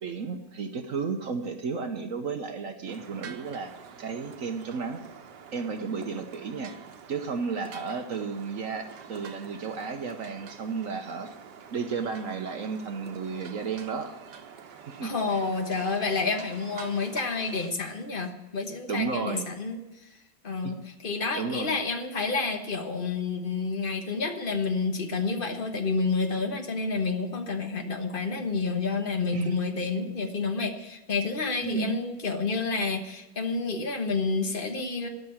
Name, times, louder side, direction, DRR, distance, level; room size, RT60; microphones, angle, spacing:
voice 1, 0.0-3.7 4.0-5.0 5.5-6.8 7.1-11.3 11.7-14.1 14.9-15.4 18.9-19.5 20.6-20.7 21.3-21.8 29.3-29.6 31.6-32.0, right 5 dB, 55° right, 6 dB, 1.2 m, -33 dB
sound 1, 2.9-17.7, right 7 dB, 90° right, 1.6 m, -46 dB
voice 2, 15.0-19.8 20.4-20.8 21.0-35.1, left 4 dB, 35° left, 5 dB, 1.2 m, -29 dB
12.5 x 6.1 x 8.8 m, 1.0 s
omnidirectional pair, 1.8 m